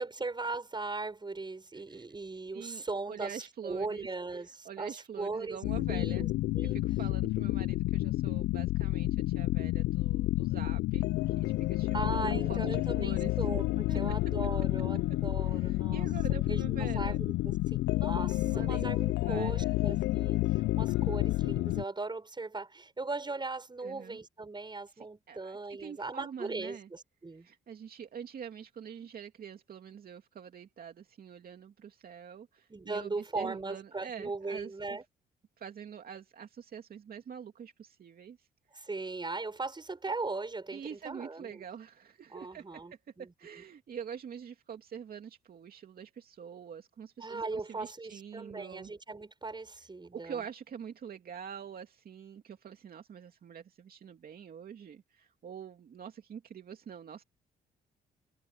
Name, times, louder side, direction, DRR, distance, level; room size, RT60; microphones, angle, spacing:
voice 1, 0.0-5.6 5.9-6.8 11.9-17.3 17.7-27.5 32.7-35.0 38.7-41.6 42.3-43.3 47.2-50.4, right 3 dB, 25° right, 6.6 m, -38 dB
voice 2, 1.7-2.1 2.5-4.1 4.3-6.3 6.6-13.4 13.9-14.0 15.5-17.2 18.4-19.8 23.8-24.2 24.9-26.9 27.3-35.0 35.6-38.5 38.7-38.9 40.7-48.9 50.1-57.2, right 8 dB, 55° right, 2.7 m, -45 dB
sound 1, 5.6-21.8, left 18 dB, 75° left, 0.5 m, -30 dB
supercardioid pair, 60°, 18 cm